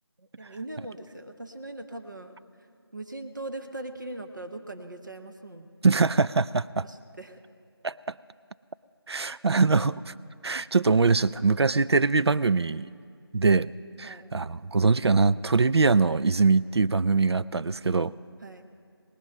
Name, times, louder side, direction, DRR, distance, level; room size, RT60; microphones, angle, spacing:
voice 1, 0.2-2.3 2.9-5.7 6.8-7.4 14.0-14.3 18.4-18.6, right 2 dB, 50° right, 5 dB, 0.9 m, -40 dB
voice 2, 5.8-6.9 7.8-8.1 9.1-10.1 10.4-12.9 13.3-13.7 14.0-18.1, right 4 dB, 80° right, 16 dB, 0.4 m, -23 dB
18.5 x 9.3 x 6.5 m, 2.2 s
figure-of-eight pair, 180°, 13 cm